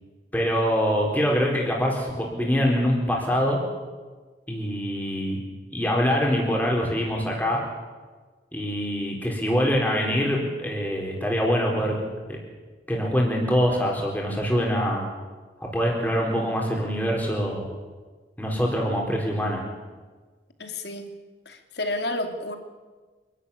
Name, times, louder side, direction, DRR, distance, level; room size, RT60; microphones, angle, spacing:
voice 1, 0.3-3.6 4.5-5.4 5.7-7.6 8.5-12.0 12.9-15.0 15.6-17.7 18.4-19.6, equal, 10° left, -1 dB, 4.0 m, -24 dB
voice 2, 20.6-21.1 21.5-22.5, left 1 dB, 65° left, 6 dB, 2.4 m, -30 dB
26.0 x 12.5 x 9.9 m, 1.4 s
head